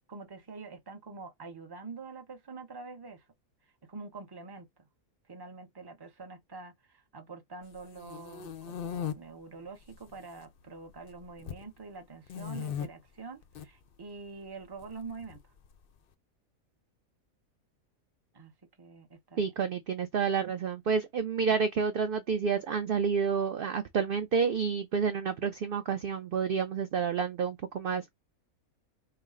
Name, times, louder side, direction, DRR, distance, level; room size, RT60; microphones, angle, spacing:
voice 1, 0.1-3.2 3.8-4.7 5.3-15.4 18.3-18.5 18.8-19.5, right 4 dB, 20° right, 0.7 m, -46 dB
sound 1, 7.7-9.1 9.8-10.4 10.7-11.6 12.3-12.9 13.4-13.7 14.8-15.7, left 8 dB, 55° left, 0.6 m, -38 dB
voice 2, 19.4-28.1, right 6 dB, 60° right, 0.6 m, -29 dB
5.6 x 2.0 x 3.7 m
omnidirectional pair, 1.5 m